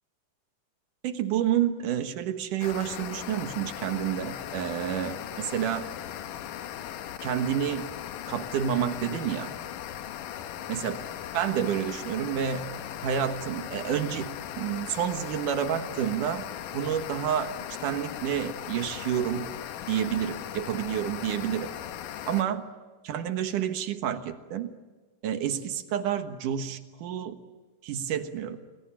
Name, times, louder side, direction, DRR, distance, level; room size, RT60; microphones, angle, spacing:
voice 1, 1.0-5.9 7.2-7.9 8.3-9.5 10.7-11.0 11.3-12.7 13.0-16.4 16.7-17.5 17.8-19.5 19.9-21.7 22.3-22.6 23.0-24.7 25.2-27.4 27.8-28.6, right 9 dB, 85° right, 8 dB, 2.9 m, -29 dB
sound 1, 2.6-22.4, left 10 dB, 85° left, 2.7 m, -38 dB
29.5 x 21.5 x 8.8 m, 1.3 s
omnidirectional pair, 3.6 m